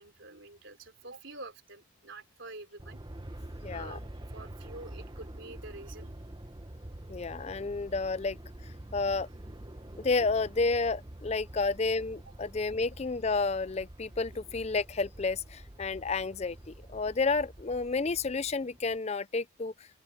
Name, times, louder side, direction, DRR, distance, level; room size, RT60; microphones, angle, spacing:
voice 1, 0.0-3.0 3.7-4.0 4.3-6.1, right 2 dB, 60° right, 4.2 m, -47 dB
Aircraft, 2.8-19.0, right 1 dB, 20° right, 1.0 m, -46 dB
voice 2, 3.6-4.0 7.1-9.3 10.0-19.9, left 4 dB, 30° left, 0.4 m, -31 dB
open air
head